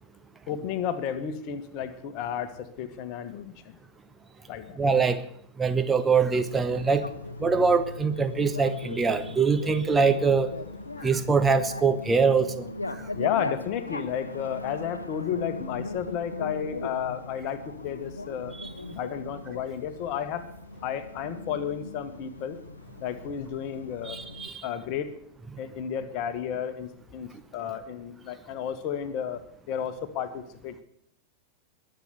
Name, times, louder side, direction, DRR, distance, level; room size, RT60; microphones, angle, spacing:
voice 1, 0.5-3.8 4.5-4.8 13.1-18.5 18.9-20.5 20.8-22.6 23.0-24.2 24.6-25.1 25.6-30.8, left 8 dB, 40° left, 11 dB, 1.5 m, -32 dB
voice 2, 4.8-5.2 5.6-7.1 7.4-10.5 11.0-13.0 18.6-18.7 24.0-24.6, right 5 dB, 15° right, 8 dB, 0.9 m, -23 dB
Bicycle, 6.3-24.5, left 2 dB, 80° left, 0.8 m, -39 dB
21.5 x 8.0 x 7.0 m, 0.68 s
figure-of-eight pair, 90°, 0 cm